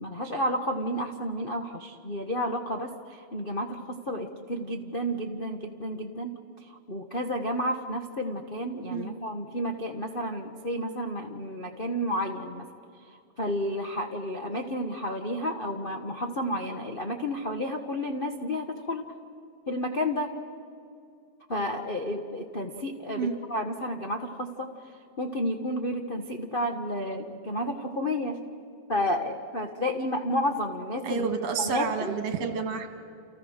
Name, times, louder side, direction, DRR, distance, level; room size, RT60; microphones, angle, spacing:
voice 1, 0.0-12.7 13.1-19.1 19.7-20.3 21.5-24.7 25.2-28.4 28.9-31.3 31.6-32.2, equal, 70° left, 2 dB, 0.5 m, -31 dB
voice 2, 31.0-33.0, right 5 dB, 60° right, 5 dB, 3.0 m, -29 dB
29.5 x 29.0 x 6.6 m, 2.4 s
omnidirectional pair, 3.3 m